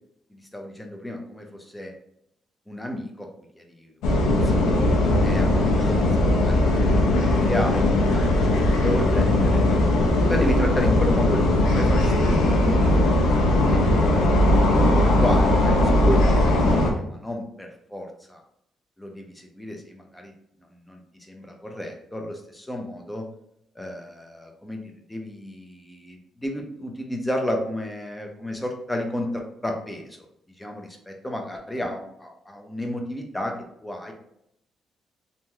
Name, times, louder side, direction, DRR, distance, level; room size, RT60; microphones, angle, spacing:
voice 1, 0.3-1.9 2.7-3.3 3.6-6.1 6.4-9.6 10.3-13.4 14.9-18.4 19.0-20.3 20.9-21.0 21.3-23.2 23.8-30.2 30.6-33.5 33.8-34.1, left 1 dB, 10° left, 2 dB, 0.6 m, -32 dB
sound 1, 4.0-16.9, left 1 dB, 85° left, 0.6 m, -19 dB
3.1 x 2.6 x 2.3 m, 0.76 s
cardioid pair, 90°, 0 cm